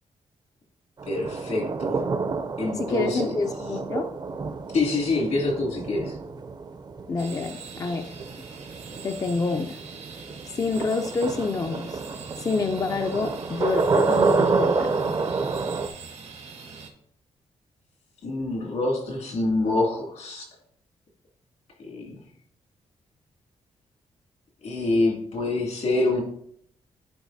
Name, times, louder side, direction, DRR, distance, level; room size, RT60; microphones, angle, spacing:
sound 1, 1.0-15.9, right 4 dB, 35° right, 0.5 m, -28 dB
voice 1, 1.1-2.0 2.6-3.3 4.7-6.2 18.2-20.5 21.8-22.2 24.6-26.2, left 2 dB, 75° left, -2 dB, 2.5 m, -26 dB
voice 2, 2.8-4.1 7.1-8.1 9.0-9.8 10.5-12.0 12.4-15.0, left 4 dB, 30° left, 6 dB, 0.3 m, -27 dB
sound 2, 7.2-16.9, right 5 dB, 80° right, 1.2 m, -43 dB
10.0 x 4.5 x 2.7 m, 0.66 s
cardioid pair, 115°, 12 cm